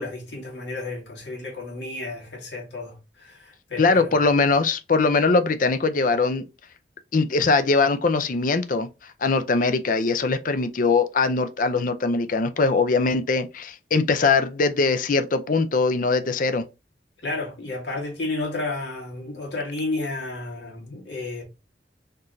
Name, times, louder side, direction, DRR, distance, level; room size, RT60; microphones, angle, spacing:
voice 1, 0.0-4.1 17.2-21.4, left 2 dB, 90° left, 2.2 m, -32 dB
voice 2, 3.8-6.5 7.1-8.9 9.2-16.6, left 4 dB, 50° left, 0.5 m, -21 dB
4.3 x 3.1 x 2.6 m
head